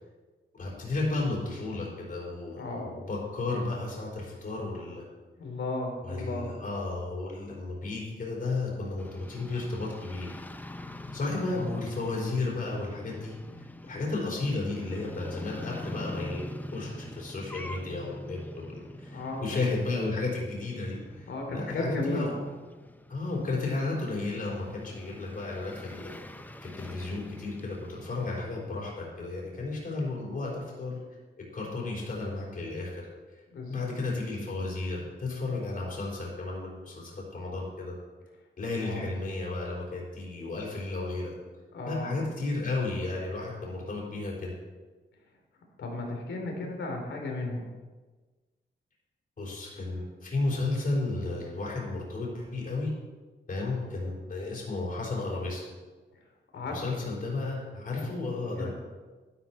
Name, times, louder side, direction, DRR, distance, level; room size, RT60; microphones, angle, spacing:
voice 1, 0.5-2.6 3.0-5.0 6.0-10.3 11.1-13.3 13.8-22.4 23.1-31.0 31.5-33.0 33.3-33.4 33.7-37.9 38.6-41.3 41.9-44.5 49.4-52.9 53.5-55.6 56.7-58.7, left 3 dB, 45° left, -4 dB, 4.1 m, -33 dB
voice 2, 2.6-2.9 5.4-6.5 11.5-11.7 19.1-19.6 21.3-22.3 33.5-33.9 38.8-39.0 41.7-42.2 45.8-47.7 56.5-57.0 58.0-58.1 58.5-58.7, left 2 dB, 80° left, 2 dB, 3.1 m, -34 dB
sound 1, 9.0-28.4, left 1 dB, 10° left, 0.6 m, -44 dB
12.0 x 11.5 x 4.4 m, 1.3 s
wide cardioid pair, 115°, 19 cm